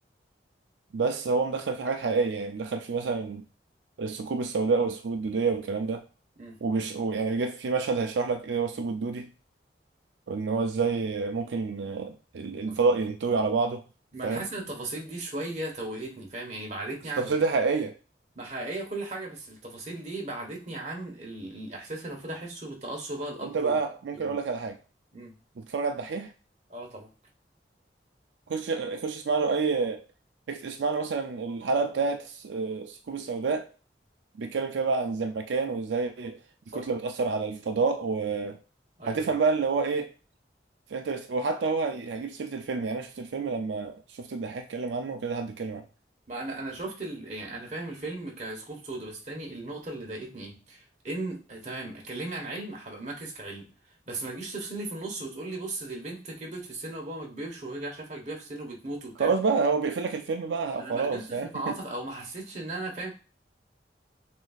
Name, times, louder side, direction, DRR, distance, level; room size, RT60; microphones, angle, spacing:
voice 1, 0.9-3.4 4.0-6.0 6.6-9.3 10.3-13.8 14.2-14.4 17.2-18.0 23.4-24.8 25.6-26.3 28.5-30.0 30.5-33.7 34.4-36.4 36.7-38.6 39.1-40.1 40.9-45.8 59.2-61.7, right 4 dB, 85° right, 0.4 m, -28 dB
voice 2, 14.1-17.3 18.3-23.8 24.1-24.4 25.1-25.3 26.7-27.1 36.7-36.9 39.0-39.3 46.3-53.7 54.1-59.3 60.7-63.1, right 2 dB, 40° right, 1.2 m, -37 dB
6.2 x 2.7 x 2.4 m
head